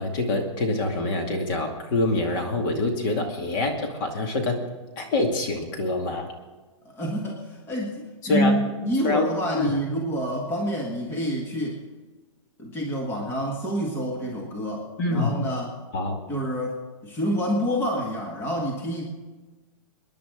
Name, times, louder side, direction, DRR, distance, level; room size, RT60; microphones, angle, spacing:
voice 1, 0.0-4.6 5.0-6.3 8.2-8.6 9.0-9.3 9.6-9.8 15.0-15.4 15.9-16.2, left 2 dB, 35° left, 3 dB, 2.4 m, -25 dB
voice 2, 6.8-11.8 12.6-15.7 16.3-19.1, equal, 15° left, -1 dB, 1.8 m, -28 dB
28.0 x 10.5 x 3.8 m, 1.2 s
hypercardioid pair, 160°, 17 cm